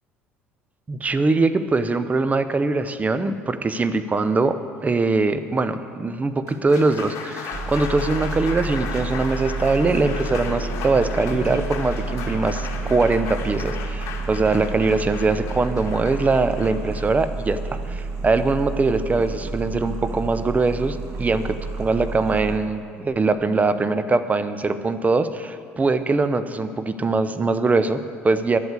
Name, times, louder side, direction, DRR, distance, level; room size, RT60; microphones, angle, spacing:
voice 1, 0.9-17.6 17.9-28.6, right 3 dB, 25° right, 11 dB, 0.7 m, -22 dB
Applause, 6.3-18.5, left 6 dB, 55° left, 1.5 m, -35 dB
sound 1, 7.5-22.6, right 3 dB, 50° right, 1.7 m, -30 dB
11.0 x 8.0 x 8.3 m, 2.3 s
hypercardioid pair, 60°, 7 cm